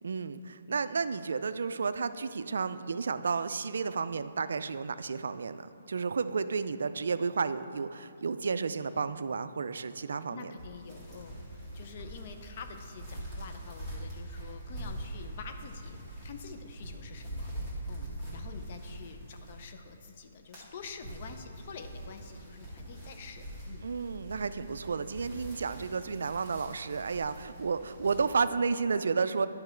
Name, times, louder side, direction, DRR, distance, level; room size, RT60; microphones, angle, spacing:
voice 1, 0.0-5.6 5.9-10.5 23.8-29.5, right 5 dB, 75° right, 12 dB, 0.3 m, -32 dB
voice 2, 10.3-17.5 17.9-23.9, left 5 dB, 40° left, 7 dB, 0.6 m, -47 dB
sound 1, 10.6-19.9 20.3-28.2, right 1 dB, 15° left, 2.1 m, -43 dB
10.5 x 5.5 x 4.4 m, 2.5 s
hypercardioid pair, 160°, 0 cm